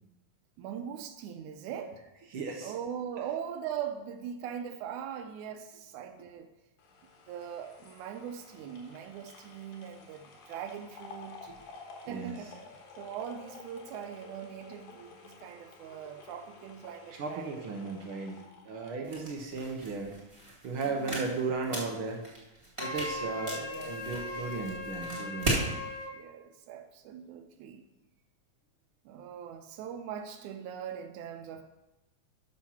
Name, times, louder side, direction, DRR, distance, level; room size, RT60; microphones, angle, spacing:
voice 1, 0.6-2.0 2.6-6.5 7.3-11.5 12.1-12.6 13.0-17.7 18.9-19.3 20.8-21.3 22.8-23.9 25.4-25.6 26.1-27.8 29.0-31.6, right 8 dB, 85° right, 7 dB, 2.2 m, -41 dB
voice 2, 2.3-2.7 12.0-12.4 17.2-20.2 20.6-22.2 22.8-25.6, right 4 dB, 65° right, 2 dB, 1.3 m, -35 dB
sound 1, 6.8-20.0 20.4-20.5, left 4 dB, 90° left, 2.7 m, -52 dB
sound 2, 19.0-25.7, right 1 dB, 10° right, 1.7 m, -37 dB
Wind instrument woodwind instrument, 22.8-26.2, left 2 dB, 70° left, 2.1 m, -39 dB
7.4 x 6.5 x 5.6 m, 1.0 s
omnidirectional pair, 3.4 m